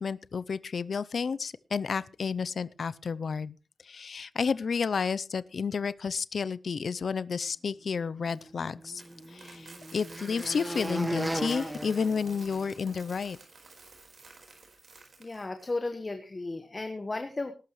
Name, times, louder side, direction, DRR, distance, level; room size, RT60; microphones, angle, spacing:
voice 1, 0.0-3.5 3.8-9.0 9.3-13.4, left 5 dB, 60° left, 18 dB, 0.6 m, -31 dB
Coin (dropping), 8.3-15.7, right 3 dB, 55° right, 4.5 m, -52 dB
sound 1, 8.4-13.0, right 1 dB, 10° right, 1.7 m, -37 dB
voice 2, 15.2-17.5, left 2 dB, 25° left, 7 dB, 1.3 m, -34 dB
19.5 x 12.0 x 3.2 m, 0.32 s
wide cardioid pair, 135°, 0 cm